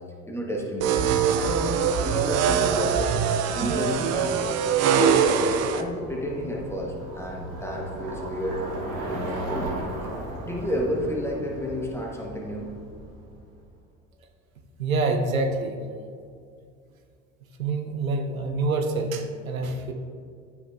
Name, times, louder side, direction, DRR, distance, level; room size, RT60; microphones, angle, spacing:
voice 1, 0.3-1.7 2.0-3.1 3.5-4.4 4.8-8.6 8.9-9.7 10.4-12.7, equal, 5° left, -1 dB, 1.2 m, -31 dB
sound 1, 0.8-5.8, right 7 dB, 40° right, 0.5 m, -23 dB
Bicycle, 2.7-13.6, right 1 dB, 60° right, 1.3 m, -38 dB
voice 2, 14.8-15.8 17.6-19.9, right 3 dB, 85° right, 4 dB, 0.6 m, -26 dB
9.6 x 4.7 x 2.4 m, 2.3 s
figure-of-eight pair, 60°, 40 cm